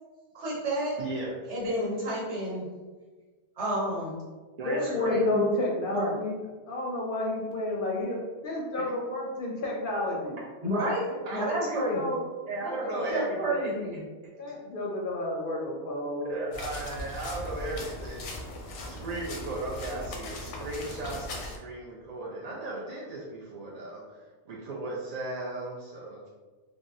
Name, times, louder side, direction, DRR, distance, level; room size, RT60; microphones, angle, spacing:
voice 1, 0.3-1.0 1.5-2.7 3.6-4.2 5.0-5.4 5.9-6.2 10.6-11.0 11.3-12.1 13.1-14.0, right 1 dB, 80° right, -5 dB, 1.3 m, -30 dB
voice 2, 1.0-1.3 4.6-5.4 8.8-8.9 11.1-11.6 12.5-13.7 16.2-18.4 18.8-26.3, right 2 dB, 55° right, -5 dB, 0.4 m, -36 dB
voice 3, 4.6-6.4 6.7-10.4 11.6-12.3 12.6-13.6 14.4-16.3, left 2 dB, 60° left, -2 dB, 0.6 m, -31 dB
sound 1, 16.5-21.6, left 1 dB, 90° left, 0.9 m, -39 dB
3.4 x 2.0 x 2.5 m, 1.3 s
omnidirectional pair, 1.2 m